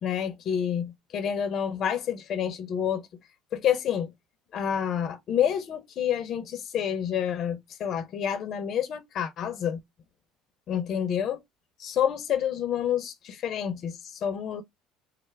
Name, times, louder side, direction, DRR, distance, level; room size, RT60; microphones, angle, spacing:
voice 1, 0.0-3.0 3.5-4.1 4.5-9.8 10.7-11.4 11.8-14.6, left 9 dB, 50° left, 0.7 m, -28 dB
3.2 x 2.1 x 3.2 m
supercardioid pair, 110°, 0 cm